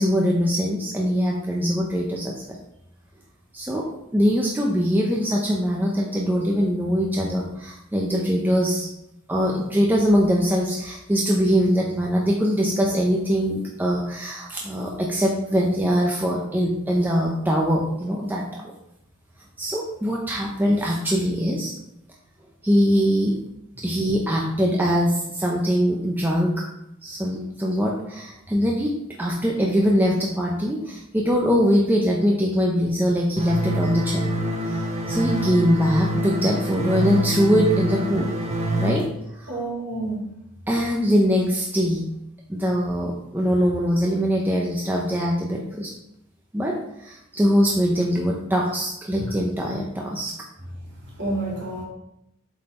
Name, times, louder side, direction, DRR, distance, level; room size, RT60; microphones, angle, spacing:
voice 1, 0.0-2.3 3.5-8.9 9.3-18.6 19.6-21.7 22.6-23.4 23.8-26.7 27.0-34.3 34.6-38.3 38.8-39.6 40.7-42.1 42.5-45.9 46.5-50.3, equal, 10° right, 0.6 m, -22 dB
sound 1, 33.4-38.9, right 1 dB, 35° right, 1.1 m, -25 dB
voice 2, 39.5-40.3 50.8-51.8, right 2 dB, 55° right, 2.5 m, -29 dB
7.7 x 4.1 x 4.3 m
head